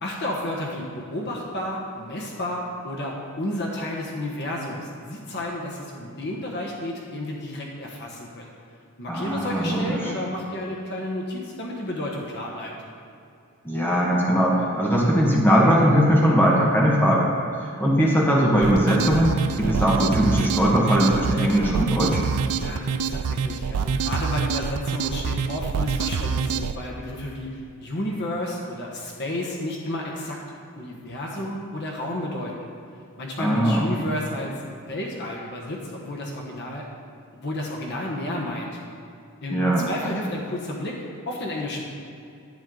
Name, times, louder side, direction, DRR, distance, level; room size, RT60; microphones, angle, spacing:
voice 1, 0.0-8.5 9.0-12.7 22.6-27.5 27.8-30.4 30.8-32.7 33.2-36.8 37.4-38.8 39.4-41.0 41.3-41.8, left 1 dB, 50° left, -2 dB, 1.3 m, -31 dB
voice 2, 9.1-10.1 13.6-17.3 17.6-22.2 33.4-33.9 39.5-39.9, equal, 10° left, -4 dB, 1.6 m, -20 dB
sound 1, 18.6-26.8, right 6 dB, 85° right, 0.4 m, -26 dB
10.5 x 8.8 x 3.9 m, 2.6 s
head